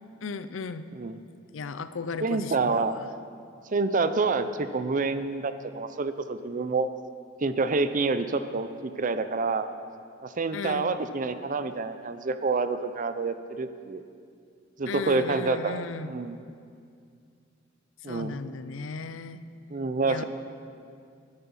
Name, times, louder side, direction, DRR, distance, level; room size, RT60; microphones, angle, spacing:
voice 1, 0.2-0.9 1.5-3.1 10.5-10.9 14.9-16.1 18.1-19.4 20.0-20.2, left 4 dB, 85° left, 13 dB, 0.5 m, -35 dB
voice 2, 2.2-3.0 3.7-6.9 7.4-9.7 10.2-14.0 14.8-16.4 18.0-18.4 19.7-20.2, right 3 dB, 45° right, 11 dB, 0.5 m, -28 dB
9.7 x 9.6 x 7.2 m, 2.3 s
head